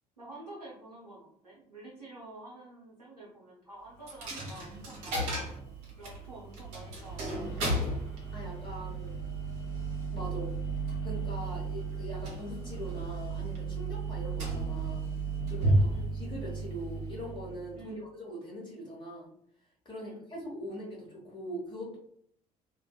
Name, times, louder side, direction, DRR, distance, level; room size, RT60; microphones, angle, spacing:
voice 1, 0.2-8.0 10.9-11.0 15.6-16.1 17.7-18.0 20.0-20.3, right 2 dB, 90° right, -6 dB, 0.6 m, -49 dB
Coin (dropping), 4.1-17.8, right 2 dB, 65° right, 0.9 m, -33 dB
voice 2, 8.3-9.3 10.1-10.5 10.9-15.0 15.5-19.3 19.8-22.0, equal, 25° left, -5 dB, 1.1 m, -42 dB
2.5 x 2.3 x 2.2 m, 0.67 s
figure-of-eight pair, 50°, 20 cm